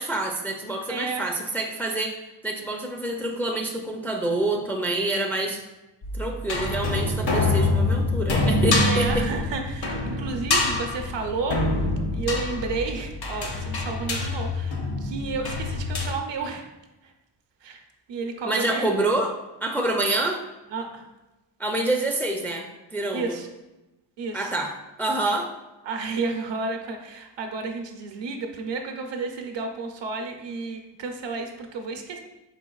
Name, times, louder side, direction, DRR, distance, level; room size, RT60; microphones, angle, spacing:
voice 1, 0.0-2.2 2.4-5.6 6.1-9.3 18.4-19.3 19.6-20.4 21.6-23.4 24.3-24.7 25.0-25.5, right 2 dB, 5° left, 1 dB, 0.3 m, -27 dB
voice 2, 0.9-1.3 8.7-11.6 12.1-16.6 17.6-17.8 18.1-18.9 20.7-21.1 23.1-23.5 24.2-24.5 25.8-32.2, right 4 dB, 70° right, 4 dB, 0.7 m, -31 dB
sound 1, 6.0-16.1, left 2 dB, 60° left, 0.8 m, -25 dB
4.5 x 4.0 x 2.3 m, 1.0 s
cardioid pair, 95°, 44 cm